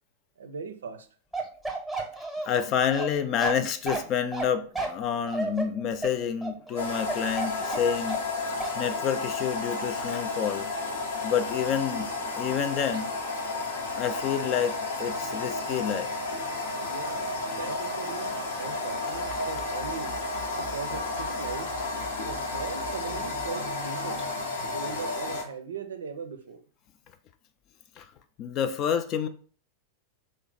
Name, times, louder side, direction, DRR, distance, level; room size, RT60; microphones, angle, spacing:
voice 1, 0.4-1.1 16.8-20.2 20.6-21.8 22.2-24.3 24.7-26.6, right 5 dB, 65° right, 0.4 m, -39 dB
Bark, 1.3-8.3 8.6-8.8, right 3 dB, ahead, 0.8 m, -32 dB
voice 2, 2.4-8.2 8.8-10.7 11.2-12.1 12.4-13.1 14.0-16.1 28.0-28.1 28.4-29.3, left 8 dB, 35° left, 0.3 m, -28 dB
sound 1, 6.8-25.4, left 3 dB, 60° left, 0.7 m, -32 dB
sound 2, 19.1-23.5, right 2 dB, 80° left, 1.1 m, -46 dB
3.1 x 2.1 x 4.0 m
figure-of-eight pair, 90°, 0 cm